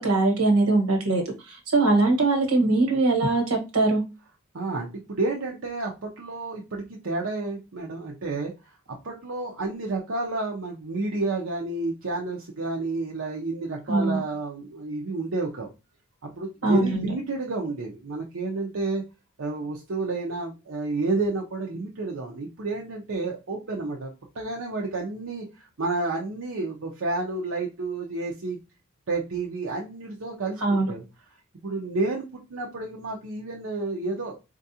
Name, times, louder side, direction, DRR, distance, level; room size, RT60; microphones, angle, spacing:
voice 1, 0.0-4.0 13.9-14.2 16.6-17.0 30.6-30.9, right 2 dB, 80° right, 3 dB, 1.3 m, -22 dB
voice 2, 4.5-8.5 9.0-15.7 16.2-19.0 19.4-24.1 24.3-28.6 29.1-30.6 30.9-31.0 31.6-34.3, right 3 dB, 65° right, 0 dB, 0.6 m, -30 dB
4.4 x 2.4 x 2.7 m, 0.28 s
head